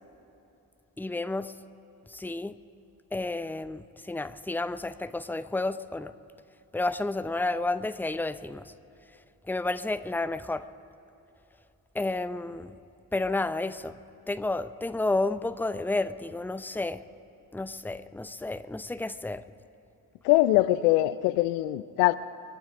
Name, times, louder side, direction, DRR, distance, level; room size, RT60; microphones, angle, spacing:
voice 1, 1.0-1.5 2.1-2.5 3.1-6.1 6.7-8.6 9.5-10.7 11.9-12.7 13.1-13.9 14.3-17.0 17.5-19.4, left 2 dB, 5° left, 13 dB, 0.7 m, -31 dB
voice 2, 20.2-22.1, left 16 dB, 80° left, 16 dB, 0.6 m, -22 dB
29.0 x 12.5 x 3.7 m, 2.9 s
hypercardioid pair, 40°, 48 cm